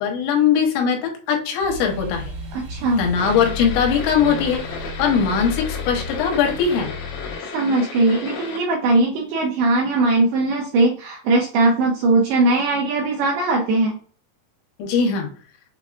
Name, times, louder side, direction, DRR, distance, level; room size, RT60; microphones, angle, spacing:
voice 1, 0.0-2.3 3.0-6.9 14.8-15.3, left 6 dB, 90° left, 2 dB, 3.2 m, -20 dB
sound 1, 1.6-6.8, right 5 dB, 60° right, 1.5 m, -38 dB
sound 2, 2.0-7.4, left 6 dB, 45° left, 1.4 m, -34 dB
voice 2, 2.5-3.0 7.5-14.0, right 2 dB, 85° right, 0 dB, 2.3 m, -19 dB
sound 3, 3.2-8.6, left 4 dB, 70° left, 2.7 m, -34 dB
6.8 x 2.4 x 2.4 m, 0.42 s
omnidirectional pair, 5.2 m